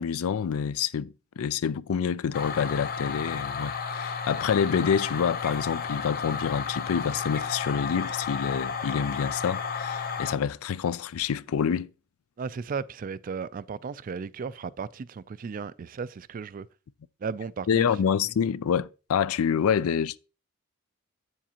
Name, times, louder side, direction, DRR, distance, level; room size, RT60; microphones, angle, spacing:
voice 1, 0.0-11.9 17.7-20.2, left 7 dB, 80° left, 0.4 m, -27 dB
sound 1, 2.3-10.3, left 6 dB, 45° left, 0.8 m, -33 dB
voice 2, 12.4-16.7 17.2-17.9, right 5 dB, 40° right, 0.3 m, -35 dB
8.0 x 7.3 x 2.9 m
head